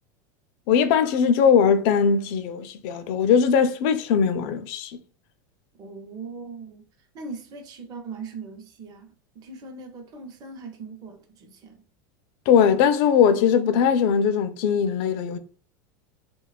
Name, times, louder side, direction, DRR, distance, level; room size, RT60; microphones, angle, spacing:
voice 1, 0.7-5.0 12.5-15.4, left 7 dB, 55° left, 0.4 m, -20 dB
voice 2, 5.8-6.9 7.1-9.1 9.3-11.8, right 4 dB, 40° right, 0.6 m, -40 dB
2.7 x 2.2 x 2.3 m
supercardioid pair, 125°, 10 cm